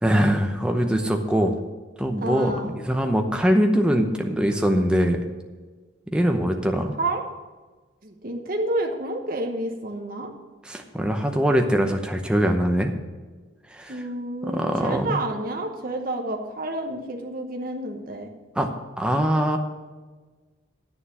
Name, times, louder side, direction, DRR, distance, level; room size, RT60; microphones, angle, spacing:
voice 1, 0.0-1.5 2.0-5.2 6.1-7.0 10.6-12.9 13.7-14.0 14.4-15.2 18.6-18.7 19.0-19.6, equal, 5° right, 3 dB, 0.8 m, -22 dB
voice 2, 2.2-2.7 7.0-7.2 8.0-10.3 13.9-18.3, right 1 dB, 45° right, 2 dB, 1.0 m, -29 dB
9.1 x 7.1 x 7.4 m, 1.3 s
head